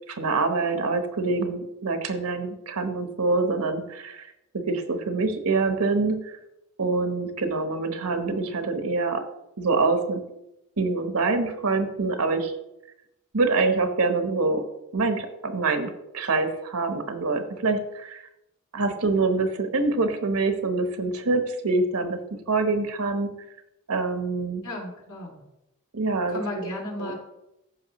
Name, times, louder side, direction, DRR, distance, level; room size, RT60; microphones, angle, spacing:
voice 1, 0.1-4.3 4.5-6.3 6.8-9.2 9.6-10.2 10.8-12.5 13.3-14.6 14.9-18.2 18.7-22.2 22.5-23.3 23.9-24.6 25.9-26.7 27.0-27.1, right 3 dB, 85° right, 7 dB, 1.0 m, -25 dB
voice 2, 24.6-25.4 26.3-27.1, left 1 dB, 70° left, -2 dB, 2.7 m, -34 dB
14.0 x 5.3 x 3.0 m, 0.87 s
head